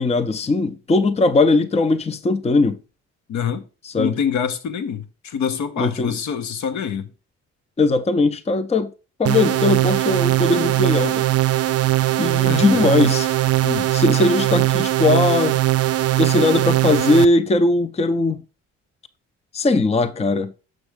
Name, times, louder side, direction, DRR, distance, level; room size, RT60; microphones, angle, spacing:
voice 1, 0.0-2.8 3.9-4.1 5.8-6.2 7.8-8.9 9.2-11.2 12.2-13.3 13.9-15.6 16.2-18.4 19.5-20.5, left 3 dB, 20° left, 0.6 m, -19 dB
voice 2, 3.3-3.7 4.0-7.1 12.4-12.9 13.6-13.9, left 7 dB, 70° left, 1.0 m, -26 dB
sound 1, 9.3-17.3, right 15 dB, 55° right, 0.5 m, -20 dB
6.3 x 6.3 x 3.3 m
cardioid pair, 90°, 30 cm